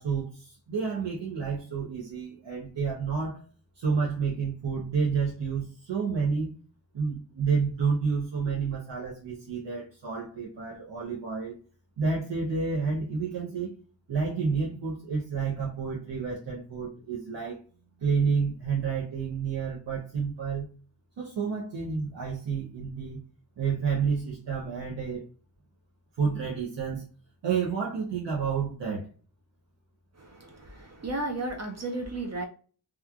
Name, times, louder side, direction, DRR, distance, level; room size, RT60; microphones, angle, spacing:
voice 1, 0.0-3.4 3.8-6.6 6.9-11.5 12.0-13.7 14.1-17.6 18.0-20.7 21.2-23.2 23.6-25.2 26.2-27.1 27.4-29.1, right 5 dB, 65° right, 0.8 m, -30 dB
voice 2, 30.2-32.5, right 2 dB, 35° right, 0.4 m, -34 dB
2.9 x 2.4 x 2.3 m
wide cardioid pair, 140°, 48 cm